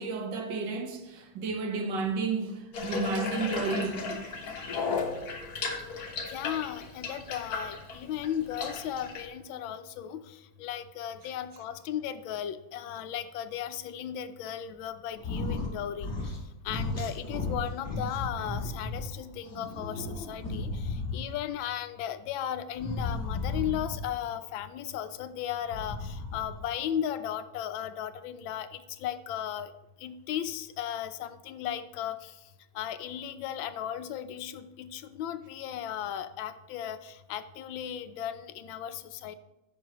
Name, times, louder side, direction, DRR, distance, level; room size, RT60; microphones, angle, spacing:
voice 1, 0.0-4.2, right 4 dB, 70° right, 1.6 m, -32 dB
Water tap faucet / Bathtub (filling or washing), 2.7-9.2, left 4 dB, 55° left, 1.6 m, -34 dB
voice 2, 6.3-16.1 16.6-29.7 30.0-32.4 32.7-39.4, left 10 dB, 90° left, 1.4 m, -36 dB
sound 1, 15.2-15.7 16.0-16.4 16.7-19.0 19.5-21.4 22.7-24.2 25.6-26.6, left 3 dB, 35° left, 2.1 m, -34 dB
14.5 x 6.2 x 3.0 m
omnidirectional pair, 2.1 m